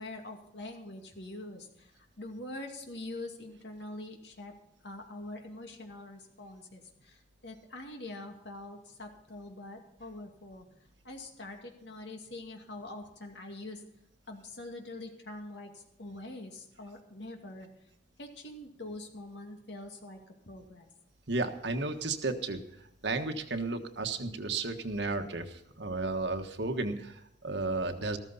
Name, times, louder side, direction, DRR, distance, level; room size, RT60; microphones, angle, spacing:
voice 1, 0.0-4.5 4.8-10.7 11.0-13.8 14.3-17.7 18.2-20.9, left 2 dB, 80° left, 3 dB, 2.3 m, -44 dB
voice 2, 21.3-22.6 23.0-28.2, right 3 dB, 85° right, 5 dB, 1.4 m, -33 dB
14.0 x 13.5 x 4.1 m, 0.80 s
head